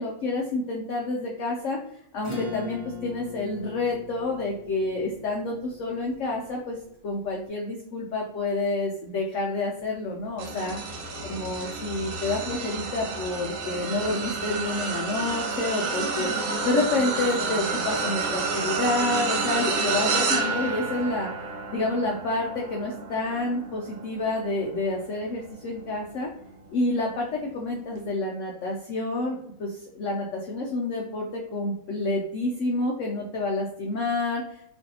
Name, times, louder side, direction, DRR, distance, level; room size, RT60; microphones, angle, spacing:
voice 1, 0.0-1.8 2.1-6.8 7.0-10.8 11.2-16.3 16.6-21.3 21.7-26.3 26.7-34.4, left 2 dB, 90° left, -1 dB, 0.6 m, -28 dB
Acoustic guitar / Strum, 2.2-7.1, left 3 dB, 25° left, 0.7 m, -40 dB
sound 1, 10.4-25.9 26.4-26.7 27.9-28.0, right 4 dB, 70° right, 1.0 m, -30 dB
3.1 x 2.5 x 2.7 m, 0.72 s
omnidirectional pair, 1.8 m